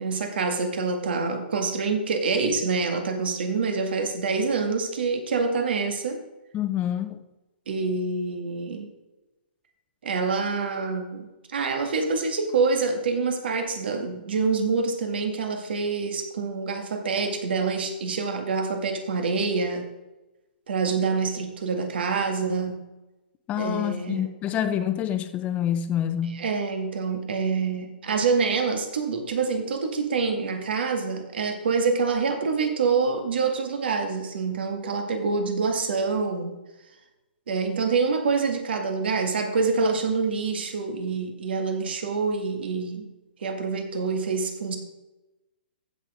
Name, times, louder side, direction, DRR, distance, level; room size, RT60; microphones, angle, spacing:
voice 1, 0.0-6.2 7.7-8.9 10.0-19.9 20.7-22.8 23.6-24.3 26.3-36.6 37.5-43.1 43.4-44.8, right 4 dB, 70° right, 4 dB, 2.1 m, -26 dB
voice 2, 6.5-7.2 23.5-26.4, left 10 dB, 25° left, 9 dB, 0.9 m, -27 dB
15.0 x 6.7 x 3.7 m, 1.0 s
hypercardioid pair, 130°, 6 cm